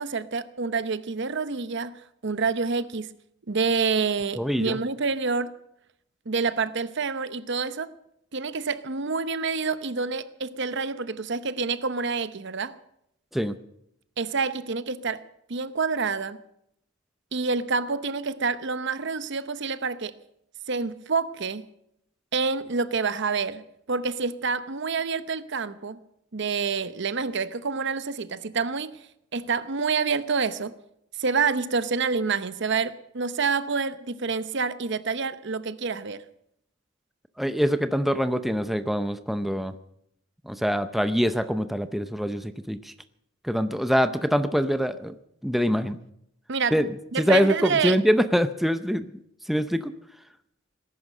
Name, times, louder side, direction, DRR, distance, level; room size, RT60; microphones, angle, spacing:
voice 1, 0.0-3.1 3.5-5.5 6.3-7.9 8.3-12.8 14.2-16.4 17.3-20.2 20.7-21.7 22.3-26.0 26.3-29.0 29.3-30.8 31.2-36.2 46.5-46.8 47.1-48.0, right 4 dB, 60° right, 0.8 m, -27 dB
voice 2, 4.4-4.8 13.3-13.5 37.4-39.7 40.4-42.9 43.4-45.2 45.4-46.0 46.7-46.9 47.2-49.1 49.5-49.9, equal, ahead, 0.6 m, -24 dB
19.0 x 11.0 x 6.6 m
head